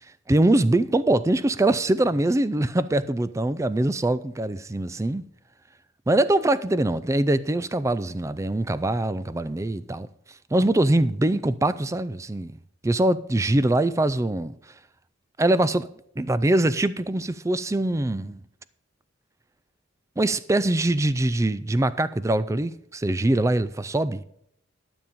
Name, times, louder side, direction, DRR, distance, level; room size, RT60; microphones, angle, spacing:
voice 1, 0.3-5.2 6.1-10.1 10.5-12.5 12.8-14.5 15.4-15.9 16.2-18.4 20.2-24.2, right 1 dB, 15° right, 0.3 m, -23 dB
12.0 x 7.1 x 5.2 m
head